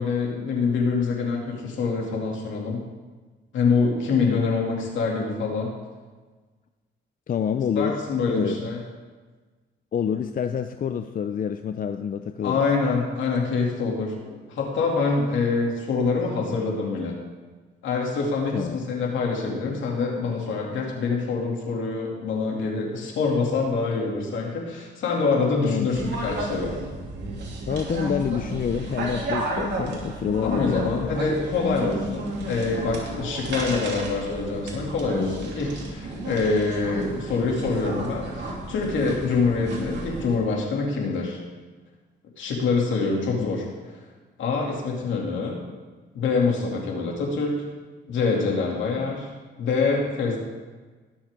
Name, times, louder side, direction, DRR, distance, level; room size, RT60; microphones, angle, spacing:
voice 1, 0.0-2.8 3.5-5.7 7.8-8.8 12.4-17.1 17.8-26.8 30.4-41.4 42.4-43.7 44.4-45.6 46.1-47.6 48.1-49.3 49.6-50.4, left 4 dB, 75° left, -1 dB, 2.8 m, -25 dB
voice 2, 7.3-8.0 8.3-8.6 9.9-12.6 18.5-18.8 25.6-25.9 27.7-31.2 43.4-43.5, left 8 dB, 45° left, 8 dB, 0.5 m, -27 dB
sound 1, 25.9-40.4, right 2 dB, 60° right, 2.8 m, -32 dB
18.5 x 7.2 x 3.8 m, 1.4 s
cardioid pair, 90°, 20 cm